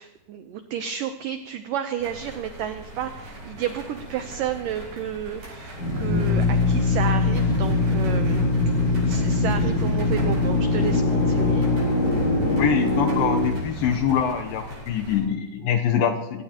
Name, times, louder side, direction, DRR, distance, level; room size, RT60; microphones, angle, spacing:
voice 1, 0.0-8.5 8.8-11.7, right 9 dB, 90° right, 8 dB, 1.9 m, -31 dB
sound 1, 2.0-15.2, right 1 dB, 45° right, 8.9 m, -41 dB
Drill, 5.7-14.4, left 2 dB, 40° left, 3.3 m, -22 dB
voice 2, 12.5-16.4, left 8 dB, 75° left, 5 dB, 2.2 m, -24 dB
23.0 x 17.5 x 2.9 m, 1.0 s
omnidirectional pair, 4.8 m